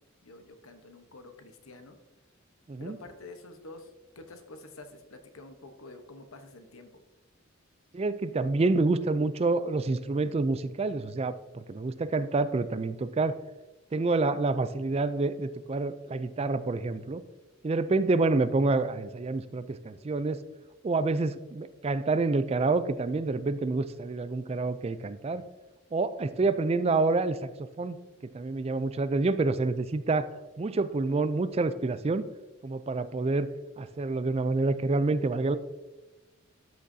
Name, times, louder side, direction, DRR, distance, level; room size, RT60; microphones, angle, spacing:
voice 1, 0.0-2.0 2.8-7.0, left 2 dB, 90° left, 7 dB, 1.1 m, -48 dB
voice 2, 7.9-13.4 13.9-17.2 17.6-20.4 20.8-25.4 25.9-28.0 28.3-30.3 30.6-32.3 32.6-33.5 33.8-35.6, right 3 dB, 30° right, 13 dB, 0.3 m, -28 dB
13.0 x 6.2 x 2.7 m, 1.1 s
head